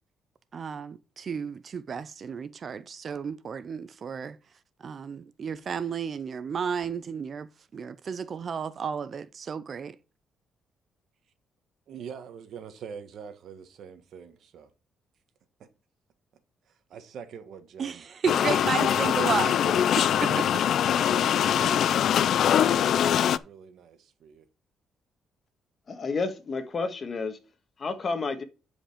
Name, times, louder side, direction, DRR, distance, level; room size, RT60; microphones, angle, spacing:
voice 1, 0.5-4.4 4.8-10.0 17.8-19.6 20.2-20.3, right 6 dB, 50° right, 0.5 m, -33 dB
voice 2, 11.9-14.7 16.7-18.0 18.9-19.8 20.3-20.5 21.1-24.5, right 7 dB, 70° right, 1.5 m, -43 dB
sound 1, 18.3-23.4, left 9 dB, 70° left, 0.4 m, -23 dB
voice 3, 25.9-27.4 27.8-28.4, left 4 dB, 40° left, 1.6 m, -30 dB
10.0 x 5.2 x 5.0 m
cardioid pair, 90°, 0 cm